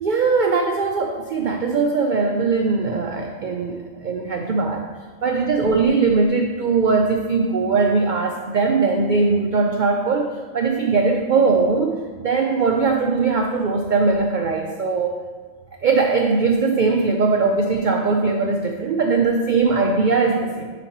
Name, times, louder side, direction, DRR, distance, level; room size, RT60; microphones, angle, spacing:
voice 1, 0.0-4.8 5.2-15.1 15.8-20.7, right 4 dB, 70° right, 3 dB, 0.4 m, -20 dB
10.0 x 5.0 x 3.0 m, 1.5 s
omnidirectional pair, 1.4 m